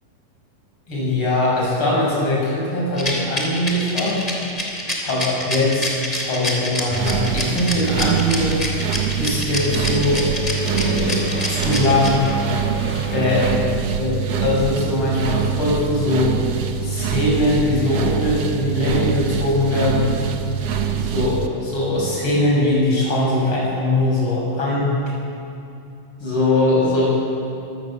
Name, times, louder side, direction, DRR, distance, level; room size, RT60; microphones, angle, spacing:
voice 1, 0.9-4.2 5.0-8.6 9.2-10.2 10.6-12.3 13.1-13.6 14.0-16.4 16.8-20.2 21.0-25.0 26.2-27.1, left 1 dB, 40° left, -5 dB, 7.3 m, -21 dB
Rattle, 3.0-12.5, left 1 dB, 10° left, 3.0 m, -26 dB
sound 1, 6.9-21.5, right 7 dB, 60° right, 2.0 m, -24 dB
sound 2, 7.2-13.6, right 1 dB, 10° right, 0.7 m, -31 dB
24.0 x 13.5 x 8.5 m, 2.6 s
omnidirectional pair, 3.8 m